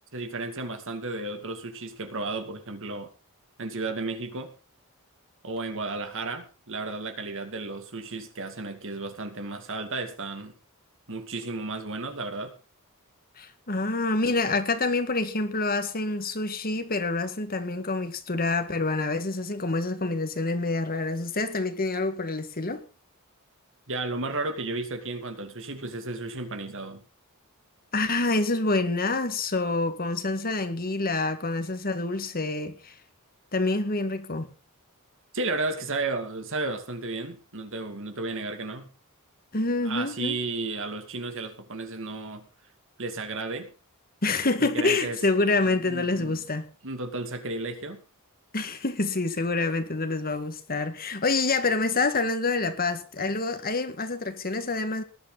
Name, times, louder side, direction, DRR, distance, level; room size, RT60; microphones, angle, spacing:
voice 1, 0.1-3.1 3.6-4.5 5.4-10.5 11.1-12.5 14.3-14.4 23.9-27.0 35.3-38.9 39.8-42.5 43.0-43.7 44.6-45.2 45.6-46.4 46.8-48.0, right 3 dB, 60° right, 2.5 m, -33 dB
voice 2, 13.4-22.8 27.9-33.0 33.5-34.5 39.5-40.4 44.2-46.6 48.5-55.0, left 3 dB, 40° left, 1.9 m, -27 dB
19.0 x 11.0 x 4.1 m
head